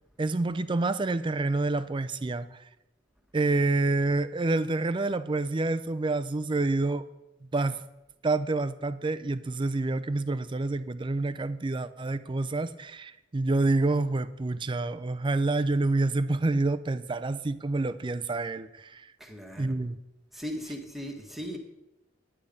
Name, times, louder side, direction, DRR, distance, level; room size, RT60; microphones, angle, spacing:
voice 1, 0.2-2.6 3.3-7.0 7.5-7.8 8.2-19.1 19.6-20.0, right 2 dB, 25° right, 0.4 m, -28 dB
voice 2, 19.2-19.8 20.3-21.6, equal, ahead, 1.4 m, -38 dB
10.0 x 10.0 x 5.2 m
head